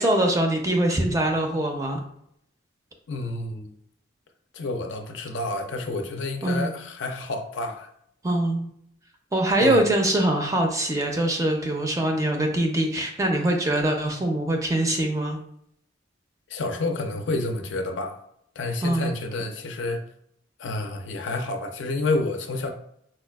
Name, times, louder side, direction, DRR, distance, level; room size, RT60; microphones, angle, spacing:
voice 1, 0.0-2.0 6.4-6.7 8.2-8.7 9.3-15.4 18.8-19.1, right 1 dB, 15° right, 3 dB, 0.4 m, -23 dB
voice 2, 3.1-3.7 4.5-7.9 9.6-9.8 16.5-18.2 18.6-20.0 20.6-22.7, left 2 dB, 75° left, 5 dB, 0.4 m, -29 dB
4.1 x 2.2 x 2.2 m, 0.70 s
head